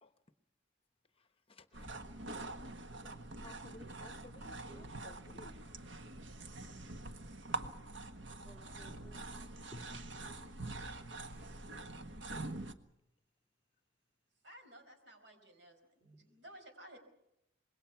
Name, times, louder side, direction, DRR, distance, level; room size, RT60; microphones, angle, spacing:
voice 1, 1.5-1.9 3.0-3.1 3.4-5.6, left 2 dB, 30° left, 9 dB, 1.0 m, -57 dB
sound 1, 1.7-12.7, right 2 dB, 85° right, 1.5 m, -45 dB
voice 2, 8.2-10.8 11.3-11.5 16.0-16.2, equal, 10° right, 0 dB, 3.4 m, -58 dB
voice 3, 14.4-17.0, right 1 dB, 65° right, 6 dB, 5.0 m, -56 dB
26.0 x 21.5 x 5.9 m, 0.83 s
head